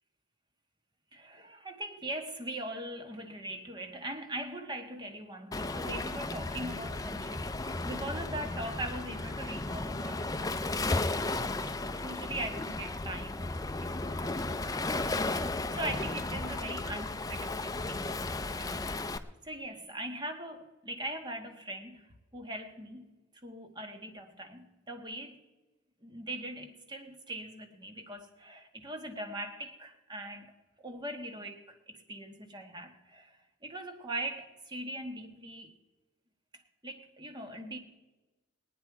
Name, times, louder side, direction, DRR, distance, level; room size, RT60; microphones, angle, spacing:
voice 1, 1.1-11.1 11.4-15.1 15.3-18.8 19.4-23.0 23.4-25.4 26.0-30.5 30.8-35.7 36.8-37.8, right 1 dB, 25° right, 1.3 m, -41 dB
Waves surf, 5.5-19.2, left 2 dB, 20° left, 0.6 m, -34 dB
21.0 x 9.4 x 4.7 m
head